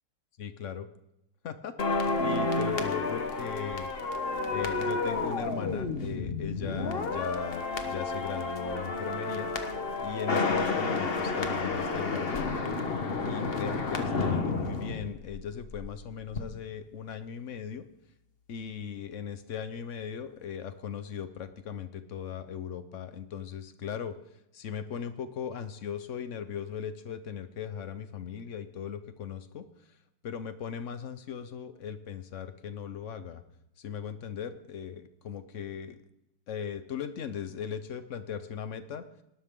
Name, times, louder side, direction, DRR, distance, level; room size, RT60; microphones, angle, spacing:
voice 1, 0.4-0.9 1.4-3.9 4.5-9.5 10.0-12.6 13.2-17.8 18.5-24.1 24.5-29.6 30.2-33.4 33.8-36.0 36.5-39.0, left 7 dB, 80° left, 11 dB, 0.6 m, -38 dB
sound 1, 1.8-15.9 16.2-16.4, left 3 dB, 35° left, 1.1 m, -31 dB
19.0 x 13.0 x 3.7 m, 0.85 s
omnidirectional pair, 2.4 m